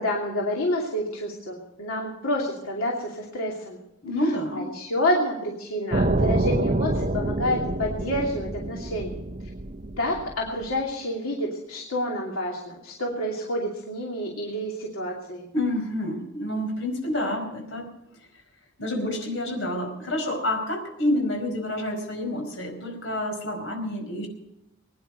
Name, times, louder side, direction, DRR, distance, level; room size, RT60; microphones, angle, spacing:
voice 1, 0.0-3.8 4.5-9.2 10.0-15.5, left 1 dB, 90° left, -2 dB, 2.8 m, -28 dB
voice 2, 4.0-4.6 15.5-17.9 18.8-24.3, left 1 dB, 65° left, 2 dB, 5.0 m, -28 dB
sound 1, 5.9-10.7, right 2 dB, 35° right, 0.8 m, -27 dB
21.5 x 10.5 x 5.3 m, 0.86 s
head